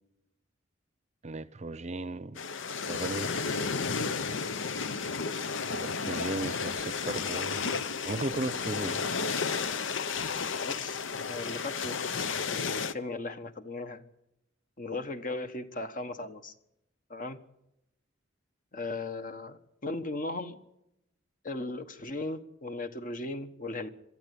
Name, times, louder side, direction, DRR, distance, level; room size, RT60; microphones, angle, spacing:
voice 1, 1.2-2.4 2.9-3.6 5.7-7.8 8.0-9.0, right 2 dB, 35° right, 0.7 m, -36 dB
sound 1, 2.3-12.9, left 5 dB, 70° left, 0.9 m, -32 dB
voice 2, 10.6-12.0 12.5-14.0 14.8-16.5 17.1-17.4 18.7-20.6 21.4-23.9, left 2 dB, 45° left, 1.5 m, -37 dB
22.5 x 13.5 x 8.5 m
head